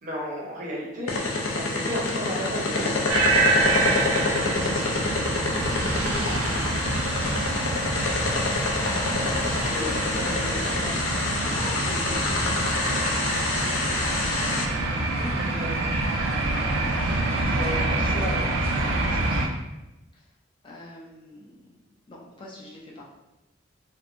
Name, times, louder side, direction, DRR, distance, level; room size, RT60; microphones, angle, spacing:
voice 1, 0.0-3.2 8.8-10.9 15.2-15.8 17.3-18.5, equal, 40° right, -3 dB, 0.6 m, -34 dB
sound 1, 1.1-14.6, left 3 dB, 90° left, 0.4 m, -27 dB
sound 2, 3.1-19.5, right 2 dB, 80° right, 0.4 m, -26 dB
voice 2, 3.6-7.7 9.7-10.0 11.4-14.3 16.2-16.9 17.4-18.2 18.7-19.5 20.1-20.3 20.6-21.7 22.1-23.0, left 1 dB, 25° left, -3 dB, 0.4 m, -43 dB
sound 3, 5.6-10.9, equal, 65° left, 0.7 m, -37 dB
2.8 x 2.1 x 2.5 m, 0.99 s
head